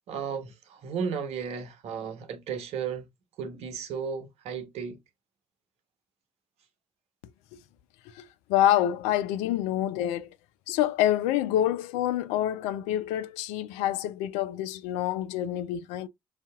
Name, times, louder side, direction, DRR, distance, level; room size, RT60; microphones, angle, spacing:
voice 1, 0.1-3.1 3.4-5.0, right 6 dB, 70° right, 0.9 m, -34 dB
voice 2, 8.5-10.3 10.7-16.1, left 12 dB, 80° left, 0.4 m, -27 dB
5.7 x 2.7 x 2.3 m
hypercardioid pair, 45°, 11 cm